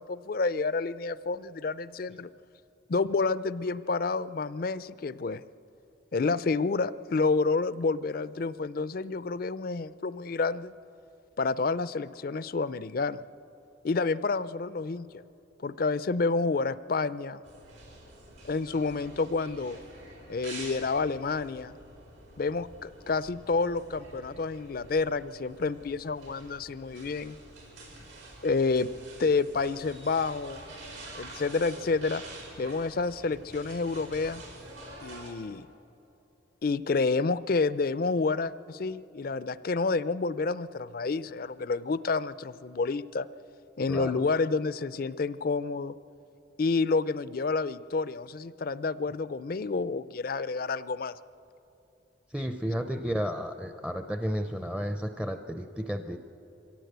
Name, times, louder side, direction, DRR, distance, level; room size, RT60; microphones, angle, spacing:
voice 1, 0.0-2.3 2.9-5.4 6.1-10.7 11.4-13.2 13.8-15.2 15.6-17.4 18.4-19.8 20.3-21.8 22.4-27.4 28.4-28.9 29.2-30.6 31.1-32.2 32.6-34.4 35.0-35.7 36.6-43.3 43.8-45.9 46.6-51.1, left 4 dB, 50° left, 16 dB, 0.4 m, -29 dB
sound 1, 17.4-35.3, right 2 dB, 85° right, 5.6 m, -47 dB
voice 2, 43.9-44.2 52.3-56.2, equal, 5° right, 7 dB, 0.5 m, -32 dB
24.0 x 17.0 x 8.1 m, 2.9 s
head